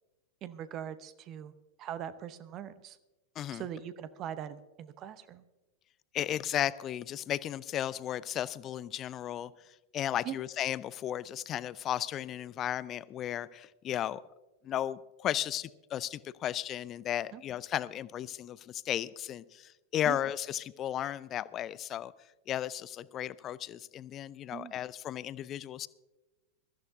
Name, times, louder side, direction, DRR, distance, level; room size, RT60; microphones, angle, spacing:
voice 1, 0.4-1.5 1.8-3.0 3.5-5.4 10.2-10.4 17.3-17.4 20.1-20.2 24.5-24.7, right 10 dB, 35° right, 13 dB, 0.8 m, -41 dB
voice 2, 6.1-9.5 9.9-14.2 14.6-22.1 22.5-25.9, left 11 dB, 30° left, 19 dB, 0.5 m, -35 dB
22.5 x 14.0 x 2.6 m, 1.1 s
figure-of-eight pair, 90°, 0 cm